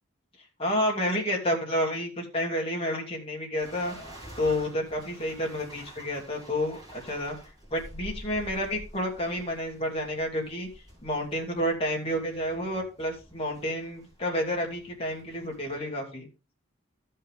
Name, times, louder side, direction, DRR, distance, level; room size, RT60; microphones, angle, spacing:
voice 1, 0.6-3.9 4.4-7.4 7.7-10.7 11.0-16.3, equal, 30° left, 0 dB, 2.6 m, -30 dB
sound 1, 3.6-15.8, equal, 20° right, 4.7 m, -48 dB
15.0 x 5.5 x 3.6 m, 0.30 s
head